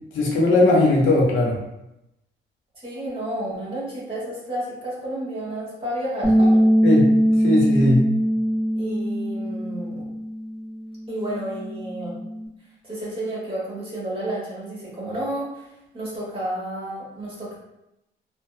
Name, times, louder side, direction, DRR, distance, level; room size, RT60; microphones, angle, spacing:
voice 1, 0.1-1.6 6.8-7.1 7.4-8.0, left 2 dB, 85° left, -3 dB, 0.7 m, -18 dB
voice 2, 2.7-6.6 8.8-10.1 11.1-12.2 12.8-15.7 15.9-17.6, right 1 dB, 25° right, -6 dB, 1.4 m, -31 dB
Bass guitar, 6.2-12.5, equal, ahead, 0.9 m, -21 dB
2.7 x 2.0 x 2.4 m, 0.88 s
cardioid pair, 90°, 20 cm